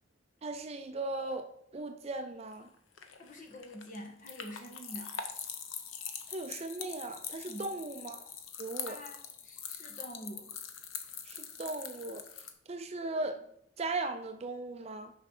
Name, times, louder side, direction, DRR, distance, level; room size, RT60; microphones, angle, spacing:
voice 1, 0.4-2.7 6.3-8.2 8.6-9.0 11.3-12.3 12.7-13.4 13.8-15.1, right 2 dB, 30° right, 7 dB, 0.5 m, -38 dB
sound 1, 2.5-12.5, left 7 dB, 90° left, 0.9 m, -43 dB
voice 2, 3.2-5.1 7.4-7.7 8.8-9.2 9.4-10.5, equal, 40° left, 2 dB, 1.4 m, -46 dB
6.5 x 5.5 x 4.4 m, 0.74 s
head